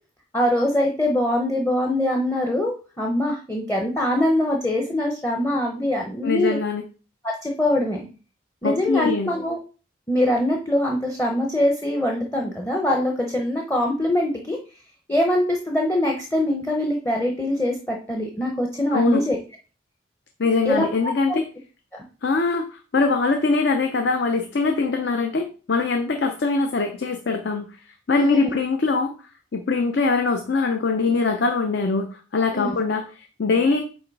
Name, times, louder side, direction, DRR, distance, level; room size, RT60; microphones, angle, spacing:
voice 1, 0.3-6.6 7.2-8.1 8.6-9.6 10.1-14.6 15.1-19.4 20.6-20.9 21.3-21.4 28.2-28.5 32.5-32.7, left 1 dB, 10° left, 1 dB, 0.7 m, -23 dB
voice 2, 6.2-6.8 8.6-9.3 18.9-19.2 20.4-21.4 22.2-27.7 28.1-29.1 29.5-33.8, left 4 dB, 55° left, 5 dB, 0.6 m, -22 dB
8.0 x 3.0 x 4.6 m, 0.36 s
head